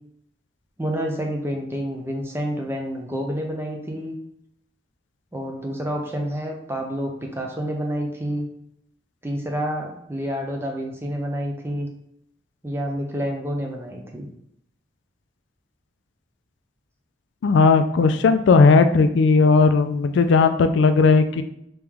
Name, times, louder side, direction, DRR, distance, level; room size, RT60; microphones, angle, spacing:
voice 1, 0.8-4.1 5.3-8.5 9.2-11.9 12.6-14.3, equal, 15° right, 1 dB, 0.6 m, -28 dB
voice 2, 17.4-21.4, left 4 dB, 80° left, 9 dB, 0.3 m, -16 dB
3.4 x 2.9 x 3.5 m, 0.76 s
head